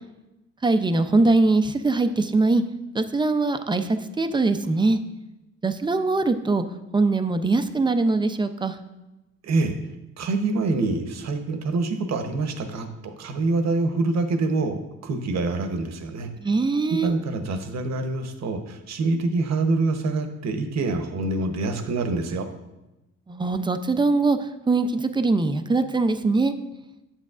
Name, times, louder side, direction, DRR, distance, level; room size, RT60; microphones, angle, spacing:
voice 1, 0.6-2.6 2.9-5.0 5.6-6.6 6.9-8.8 16.4-17.1 23.3-24.4 24.7-26.5, right 3 dB, 15° right, 9 dB, 0.5 m, -22 dB
voice 2, 9.4-9.8 10.2-16.3 16.9-22.5, right 3 dB, 60° right, 7 dB, 0.9 m, -26 dB
9.1 x 7.1 x 2.4 m, 0.98 s
cardioid pair, 90°, 30 cm